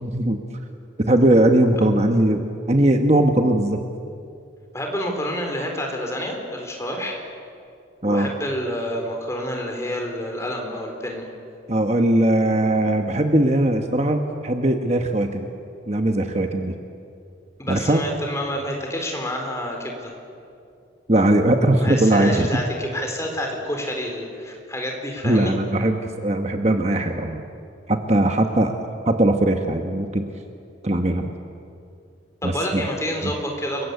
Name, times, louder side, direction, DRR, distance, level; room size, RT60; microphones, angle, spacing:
voice 1, 0.0-0.4 1.0-3.8 8.0-8.3 11.7-15.5 15.9-16.7 17.7-18.0 21.1-22.5 25.2-27.4 27.9-28.8 29.0-30.2 30.8-31.3 32.4-32.8 33.2-33.3, right 1 dB, 35° right, 5 dB, 1.2 m, -19 dB
voice 2, 4.7-7.2 8.1-11.3 17.6-20.1 21.7-25.5 32.4-33.8, equal, 15° left, 2 dB, 4.2 m, -28 dB
29.5 x 22.5 x 8.2 m, 2.5 s
head